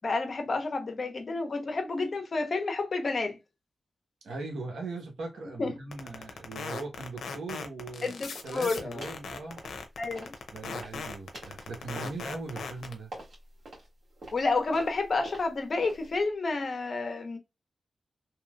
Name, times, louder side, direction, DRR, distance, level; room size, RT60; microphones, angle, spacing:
voice 1, 0.0-3.4 5.6-5.8 8.0-9.0 10.0-10.3 14.3-17.4, left 3 dB, 55° left, 0.9 m, -30 dB
voice 2, 4.2-8.1 8.4-9.6 10.5-13.1, right 3 dB, 90° right, 1.0 m, -39 dB
sound 1, 5.9-12.9, left 5 dB, 90° left, 0.6 m, -38 dB
sound 2, 8.3-8.6 9.0-9.3 9.6-10.4 10.7-16.2, right 1 dB, 70° right, 2.0 m, -47 dB
3.1 x 2.8 x 2.3 m
cardioid pair, 55°, 0 cm